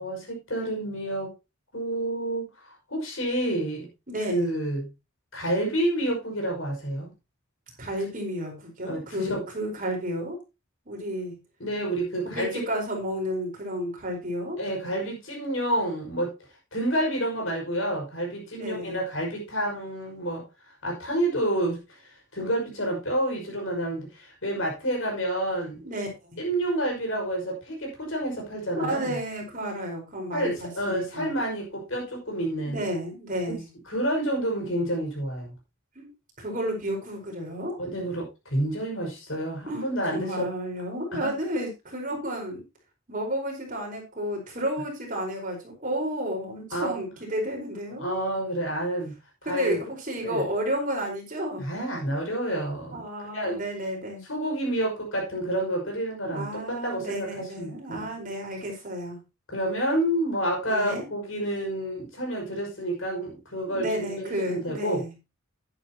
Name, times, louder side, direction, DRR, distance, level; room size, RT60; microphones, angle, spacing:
voice 1, 0.0-1.3 1.7-2.5 2.9-3.9 4.3-4.9 5.3-7.1 8.8-9.4 11.6-12.6 14.6-16.3 16.7-20.4 20.8-21.8 22.3-25.8 26.4-29.2 30.3-32.8 33.5-33.6 33.9-35.5 37.8-40.5 41.1-41.3 46.7-46.9 48.0-49.2 49.5-49.8 50.2-50.4 51.6-53.0 53.3-53.6 54.3-58.1 59.5-65.0, right 1 dB, 65° left, 5.8 m, -29 dB
voice 2, 4.1-4.5 7.8-10.4 10.9-11.3 12.3-14.6 18.5-19.0 25.8-26.4 28.8-31.3 32.6-33.6 35.9-36.1 36.4-37.8 39.7-42.6 43.1-48.0 49.4-51.7 52.9-54.2 56.2-59.2 60.7-61.1 63.6-65.1, equal, 40° right, 4.6 m, -32 dB
11.5 x 10.5 x 2.9 m
head